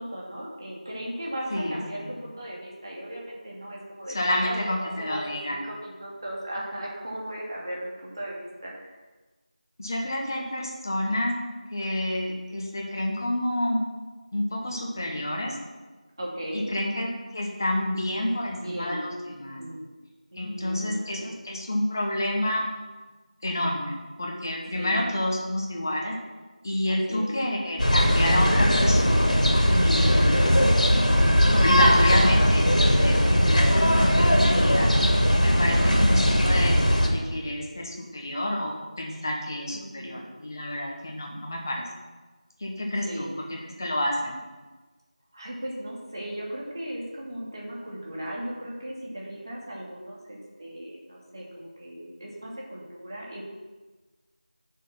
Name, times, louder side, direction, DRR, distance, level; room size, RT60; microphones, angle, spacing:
voice 1, 0.0-9.0 16.2-16.7 18.6-19.9 20.3-21.3 24.7-25.0 26.9-27.3 35.7-35.9 39.7-40.2 43.1-43.3 45.3-53.4, right 1 dB, 35° right, -4 dB, 2.5 m, -37 dB
voice 2, 1.5-2.0 4.1-5.6 9.8-11.3 11.7-13.8 14.3-15.5 16.5-19.6 20.4-22.6 23.4-26.1 26.6-30.7 31.5-32.6 33.0-34.9 35.4-38.7 39.0-41.8 42.6-43.3 43.8-44.4, left 1 dB, 25° left, -1 dB, 1.5 m, -29 dB
sound 1, 27.8-37.1, equal, 70° left, 2.5 m, -19 dB
8.6 x 6.9 x 5.8 m, 1.3 s
figure-of-eight pair, 175°, 4 cm